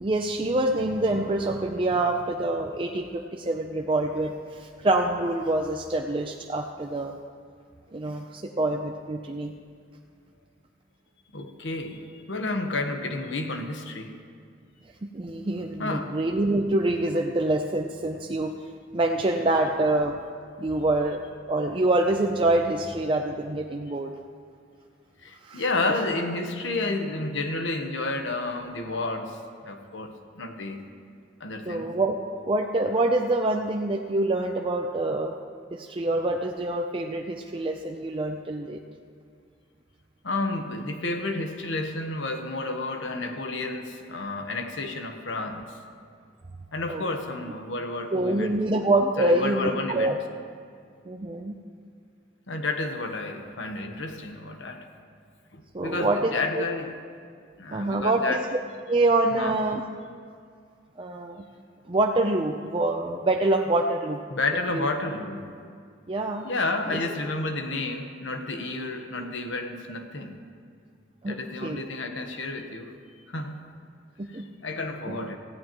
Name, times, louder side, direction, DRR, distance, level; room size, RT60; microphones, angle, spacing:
voice 1, 0.0-7.2 7.9-9.5 15.0-18.5 18.9-20.2 20.6-21.2 21.5-24.1 25.4-25.6 31.6-32.2 32.5-35.3 35.7-38.8 46.9-47.0 48.1-50.1 51.1-51.6 55.7-56.7 57.7-58.4 58.9-59.8 61.0-61.4 61.9-64.2 64.7-64.9 66.1-66.4 66.9-67.0 71.2-71.4 71.6-71.8 74.2-74.4 75.1-75.2, right 2 dB, 30° right, 2 dB, 0.5 m, -26 dB
voice 2, 11.3-14.1 15.8-16.2 25.2-30.9 31.4-31.9 40.2-45.8 46.7-48.6 49.2-50.2 52.5-54.9 55.5-56.9 57.6-58.4 59.3-59.6 64.3-65.5 66.4-70.4 71.3-73.0 73.3-73.6 74.3-75.4, left 2 dB, 85° left, 5 dB, 1.1 m, -31 dB
19.0 x 15.0 x 3.0 m, 2.2 s
head